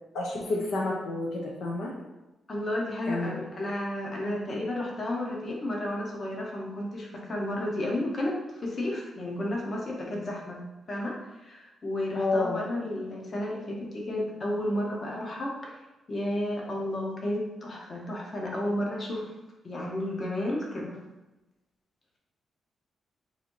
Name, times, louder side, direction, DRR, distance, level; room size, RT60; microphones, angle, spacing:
voice 1, 0.1-1.9 3.1-3.5 12.1-12.6, left 2 dB, 80° left, -1 dB, 0.7 m, -29 dB
voice 2, 2.5-10.6 10.9-15.7 16.1-19.3 19.6-21.0, left 1 dB, 35° left, -2 dB, 1.0 m, -32 dB
4.0 x 2.7 x 4.6 m, 1.1 s
cardioid pair, 130°, 0 cm